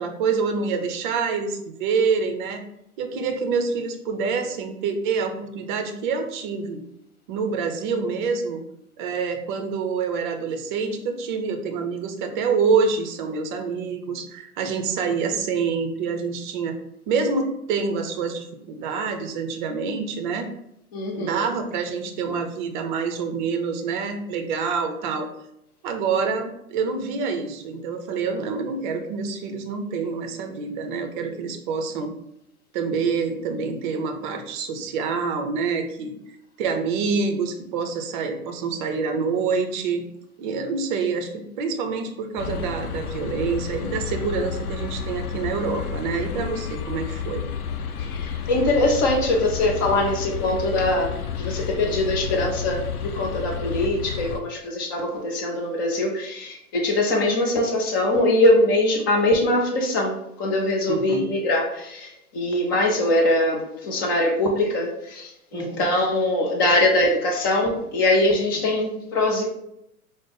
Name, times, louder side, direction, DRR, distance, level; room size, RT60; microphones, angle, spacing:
voice 1, 0.0-2.6 3.0-6.8 7.3-8.6 9.0-16.8 17.1-20.5 21.2-25.3 25.8-32.1 32.7-36.1 36.6-40.0 40.4-47.4 60.9-61.2 65.5-65.8, right 5 dB, 35° right, 5 dB, 0.6 m, -26 dB
voice 2, 20.9-21.5 48.0-69.5, left 1 dB, 20° left, 1 dB, 0.3 m, -22 dB
sound 1, 42.4-54.4, left 7 dB, 85° left, 0.5 m, -31 dB
4.9 x 2.0 x 3.7 m, 0.79 s
figure-of-eight pair, 105°, 44 cm